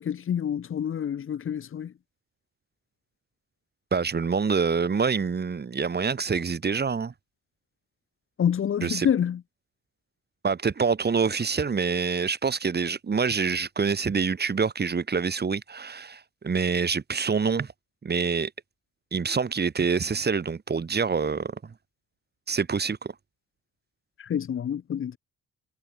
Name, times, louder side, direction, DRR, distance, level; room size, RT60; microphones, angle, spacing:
voice 1, 0.0-1.9 8.4-9.4 24.2-25.2, left 9 dB, 45° left, 0.9 m, -27 dB
voice 2, 3.9-7.1 8.8-9.1 10.4-17.7 18.0-18.5 19.1-21.7 22.5-23.1, right 5 dB, 35° right, 2.7 m, -26 dB
cardioid pair, 90°, 30 cm